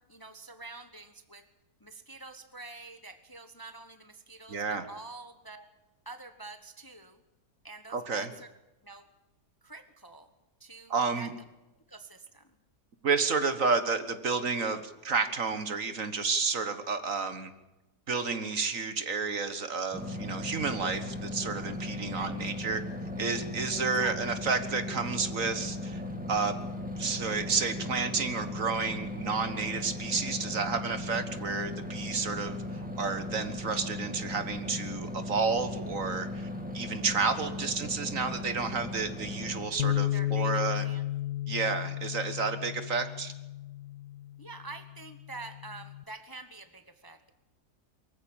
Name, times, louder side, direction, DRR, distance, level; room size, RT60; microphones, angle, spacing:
voice 1, 0.0-1.4 1.8-5.7 6.0-7.2 7.6-8.5 8.8-9.1 9.6-10.3 10.6-11.3 11.9-12.6 22.1-22.4 24.0-24.2 40.1-41.0 44.4-47.3, right 3 dB, 15° left, 9 dB, 1.1 m, -47 dB
voice 2, 4.5-4.8 7.9-8.3 10.9-11.3 13.0-17.5 18.1-22.8 23.2-26.0 26.3-26.6 27.0-36.5 36.7-40.8 41.5-43.3, right 4 dB, 55° right, 10 dB, 1.7 m, -31 dB
sound 1, 19.9-39.7, left 1 dB, 5° right, 2.3 m, -37 dB
Bass guitar, 39.8-46.0, left 12 dB, 85° left, 1.6 m, -33 dB
23.5 x 15.0 x 8.8 m, 1.0 s
omnidirectional pair, 1.8 m